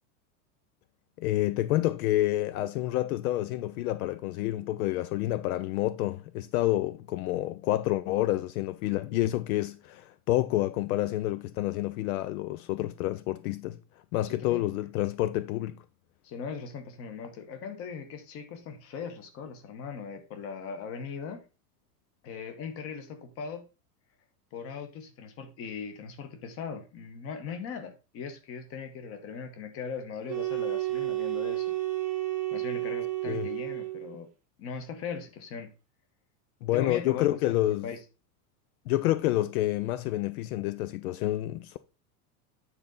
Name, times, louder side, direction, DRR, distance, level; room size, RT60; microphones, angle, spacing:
voice 1, 1.2-13.8 14.1-15.8 33.3-33.5 36.6-37.9 38.9-41.8, left 15 dB, 70° left, 0.5 m, -28 dB
voice 2, 14.2-14.6 16.2-21.4 22.2-23.7 24.5-31.7 32.5-34.3 34.6-35.7 36.7-37.6 37.8-38.0, left 6 dB, 30° left, 1.1 m, -39 dB
sound 1, 30.3-34.2, right 16 dB, 15° right, 0.7 m, -31 dB
9.1 x 4.0 x 3.8 m
supercardioid pair, 160°, 45 cm